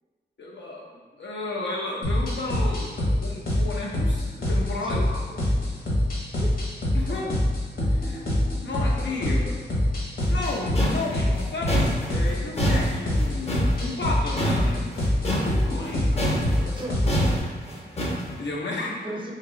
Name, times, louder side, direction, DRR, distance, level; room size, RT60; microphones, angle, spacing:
voice 1, 0.4-0.9 1.1-5.2 6.9-7.4 7.9-8.3 8.6-9.5 10.2-16.2 18.4-19.3, left 2 dB, 80° left, -3 dB, 0.7 m, -33 dB
sound 1, 2.0-17.4, left 1 dB, 55° left, 1.0 m, -25 dB
voice 2, 6.4-7.4 16.6-18.2 18.8-19.3, right 1 dB, 25° right, -1 dB, 0.5 m, -39 dB
sound 2, 10.2-18.4, equal, 35° left, 0.6 m, -27 dB
2.9 x 2.9 x 3.7 m, 1.5 s
wide cardioid pair, 105°, 18 cm